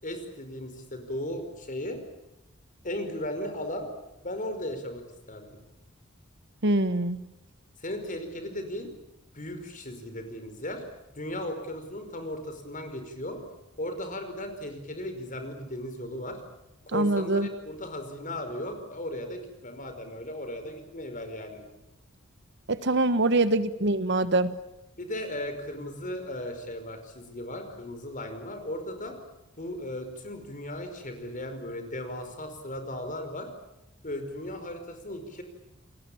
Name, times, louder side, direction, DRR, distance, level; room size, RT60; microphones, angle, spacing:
voice 1, 0.0-2.0 2.8-3.9 4.2-5.0 5.3-5.6 7.8-8.9 9.3-10.8 11.1-13.4 13.8-16.4 16.8-21.7 25.0-29.1 29.6-33.5 34.0-35.4, left 1 dB, 40° left, 7 dB, 5.1 m, -36 dB
voice 2, 6.6-7.2 16.9-17.5 22.7-24.5, right 2 dB, 60° right, 13 dB, 1.3 m, -24 dB
29.5 x 20.5 x 8.8 m, 0.91 s
head